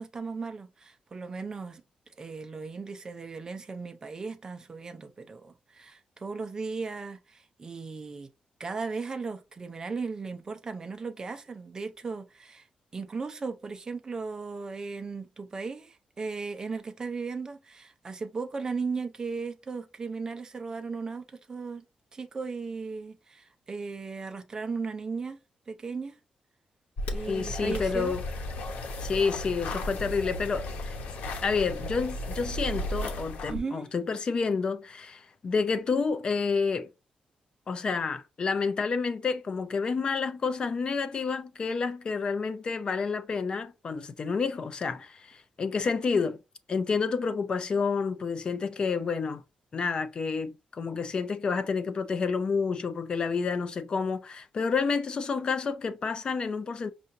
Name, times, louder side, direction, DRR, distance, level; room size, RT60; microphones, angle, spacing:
voice 1, 0.0-1.8 2.2-8.3 8.6-12.7 12.9-21.8 22.1-25.4 25.7-26.2 27.1-28.2 33.5-33.9, right 4 dB, 25° right, 0.6 m, -36 dB
sound 1, 27.0-33.6, left 1 dB, 90° left, 0.9 m, -35 dB
voice 2, 27.3-28.2 29.0-31.0 31.4-36.9 37.7-46.4 46.7-49.4 49.7-56.9, left 5 dB, 40° left, 0.5 m, -29 dB
5.5 x 2.5 x 2.7 m
wide cardioid pair, 155°, 2 cm